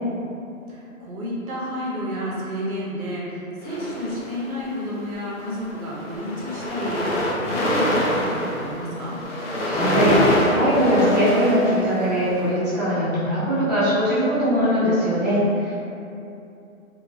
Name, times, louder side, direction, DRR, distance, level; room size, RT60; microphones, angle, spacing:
voice 1, 0.7-9.2, equal, 85° right, -5 dB, 1.0 m, -30 dB
sound 1, 3.6-4.6 5.4-5.6 5.9-12.4, left 1 dB, 55° left, 0.6 m, -25 dB
voice 2, 9.6-15.7, equal, 30° right, -11 dB, 0.6 m, -21 dB
2.9 x 2.0 x 2.7 m, 2.7 s
hypercardioid pair, 160°, 42 cm